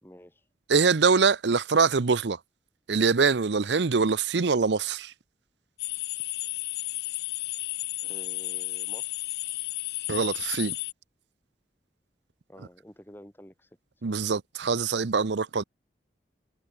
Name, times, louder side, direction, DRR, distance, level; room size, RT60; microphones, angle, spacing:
voice 1, 0.0-0.4 8.0-9.2 12.5-13.7, equal, 10° left, 3.2 m, -49 dB
voice 2, 0.7-2.4 2.9-5.1 10.1-10.8 14.0-15.6, right 5 dB, 80° right, 0.7 m, -24 dB
sound 1, 5.8-10.9, left 20 dB, 60° left, 0.5 m, -33 dB
head